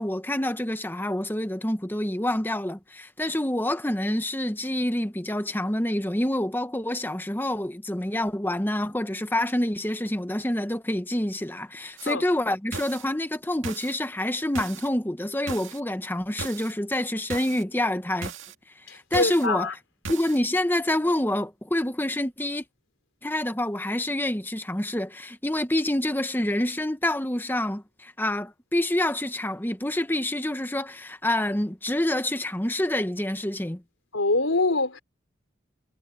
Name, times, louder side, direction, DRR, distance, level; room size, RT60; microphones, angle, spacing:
voice 1, 0.0-18.3 18.9-19.7 20.1-22.6 23.2-33.8, left 1 dB, 10° left, 1.0 m, -27 dB
sound 1, 12.0-12.1 12.7-13.0 13.6-14.0 14.5-14.9 15.5-15.8 16.4-16.7 17.3-17.6 18.2-18.5 19.1-19.5 20.0-20.4, right 4 dB, 75° right, 2.1 m, -37 dB
voice 2, 18.9-19.7 34.1-35.0, left 2 dB, 85° left, 3.9 m, -24 dB
head